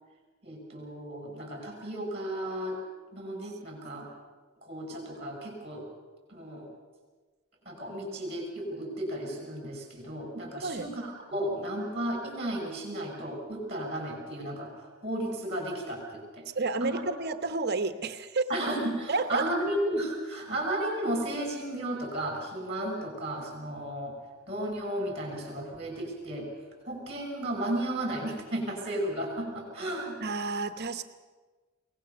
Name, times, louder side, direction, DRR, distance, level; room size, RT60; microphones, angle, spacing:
voice 1, 0.4-2.8 3.1-4.1 4.6-5.8 6.3-6.7 7.6-16.4 16.8-17.0 18.5-24.2 24.5-26.5 26.8-30.2, right 1 dB, 30° right, 2 dB, 6.4 m, -34 dB
voice 2, 16.5-18.5 19.1-19.4 20.5-20.6 30.2-31.0, right 3 dB, 50° right, 10 dB, 1.0 m, -30 dB
22.0 x 19.0 x 6.8 m, 1.3 s
head